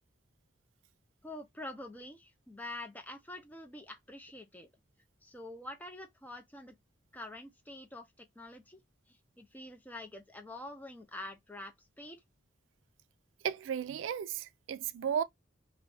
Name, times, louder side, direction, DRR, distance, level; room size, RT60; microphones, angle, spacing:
voice 1, 1.2-4.7 5.2-6.8 7.1-8.8 9.1-12.2, left 1 dB, 10° left, 0.6 m, -46 dB
voice 2, 13.4-15.2, right 8 dB, 80° right, 0.3 m, -34 dB
3.1 x 2.6 x 3.3 m
head